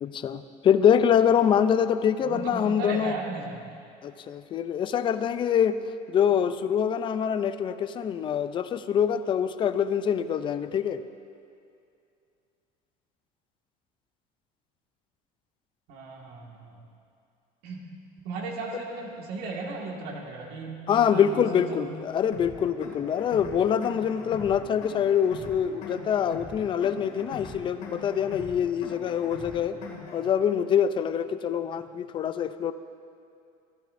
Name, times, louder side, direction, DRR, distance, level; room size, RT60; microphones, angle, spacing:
voice 1, 0.0-3.1 4.0-5.8 6.1-11.0 20.9-29.8 30.1-32.7, left 8 dB, 30° left, 12 dB, 0.4 m, -25 dB
voice 2, 2.2-3.7 15.9-16.8 17.6-17.8 18.2-21.9, right 3 dB, 70° right, -1 dB, 1.8 m, -36 dB
sound 1, 22.3-30.3, left 4 dB, 55° left, 2.3 m, -42 dB
15.0 x 12.5 x 2.6 m, 2.5 s
cardioid pair, 140°, 17 cm